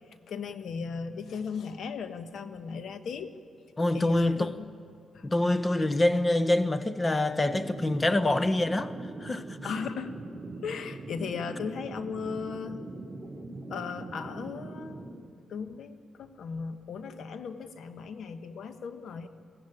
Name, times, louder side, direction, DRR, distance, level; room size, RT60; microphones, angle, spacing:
voice 1, 0.3-3.3 3.9-4.7 5.1-5.3 5.7-5.9 8.3-8.5 9.6-10.1 10.6-12.8 13.7-15.0 15.5-19.3, left 5 dB, 70° left, 1.4 m, -37 dB
voice 2, 3.8-4.5 5.2-8.9 9.2-9.7, left 1 dB, 30° left, 1.1 m, -25 dB
sound 1, 7.3-15.1, right 2 dB, 30° right, 4.1 m, -41 dB
21.5 x 15.5 x 9.9 m
supercardioid pair, 55°, 0 cm